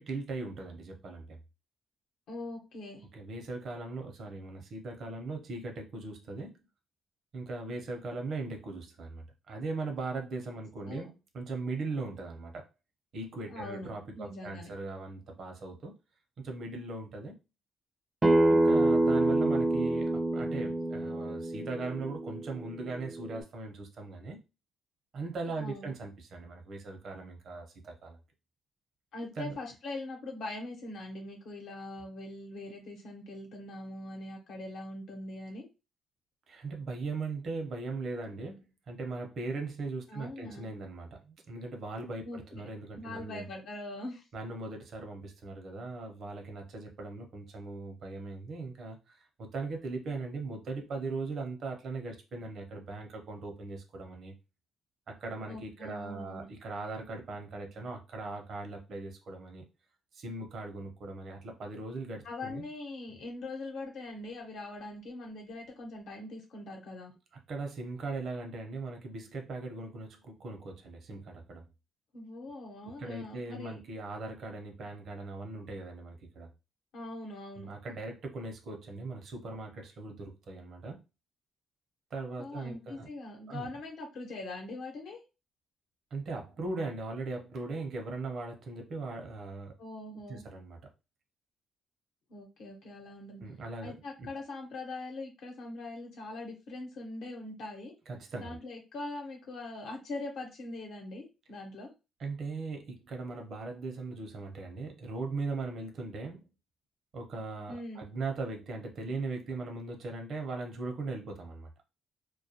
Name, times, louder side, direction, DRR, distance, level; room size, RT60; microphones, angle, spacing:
voice 1, 0.0-1.4 3.1-6.6 7.3-12.6 13.1-15.9 16.4-17.4 18.5-24.4 25.1-28.2 29.4-29.6 36.5-43.5 44.3-54.3 55.1-59.7 60.1-62.6 67.5-71.7 72.8-76.5 77.6-81.0 82.1-83.1 83.5-83.7 86.1-89.8 90.3-90.8 93.4-94.3 98.1-98.6 102.2-106.5 107.1-111.7, right 3 dB, 60° right, 3 dB, 0.7 m, -39 dB
voice 2, 2.3-3.0 10.8-11.1 13.5-13.9 14.2-14.7 25.6-25.9 29.1-35.6 40.1-40.7 42.2-42.7 42.9-44.3 55.5-56.5 62.2-67.1 72.1-73.8 76.9-77.7 82.4-85.2 89.8-90.4 92.3-93.4 93.8-97.9 98.4-101.9 107.7-108.1, left 2 dB, 75° left, 1 dB, 0.9 m, -42 dB
Acoustic guitar, 18.2-23.4, right 1 dB, 20° right, 0.4 m, -27 dB
2.3 x 2.2 x 2.8 m, 0.28 s
cardioid pair, 90°, 0 cm